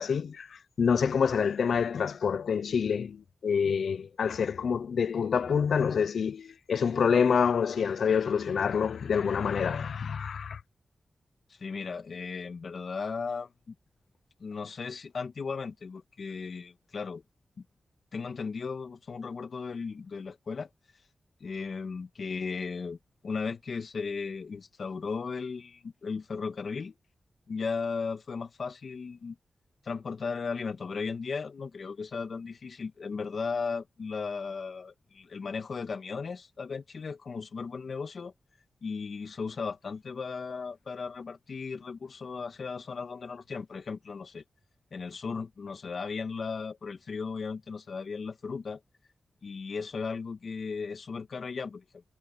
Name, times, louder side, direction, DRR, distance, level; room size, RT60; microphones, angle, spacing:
voice 1, 0.0-10.6, left 6 dB, 80° left, 0.6 m, -27 dB
voice 2, 11.5-13.7 14.4-17.2 17.6-17.7 18.1-20.7 21.4-23.0 23.2-26.9 27.5-29.4 29.8-38.3 38.8-44.4 44.9-48.8 49.4-52.0, left 5 dB, 55° left, 2.3 m, -36 dB
wide cardioid pair, 155°, 0 cm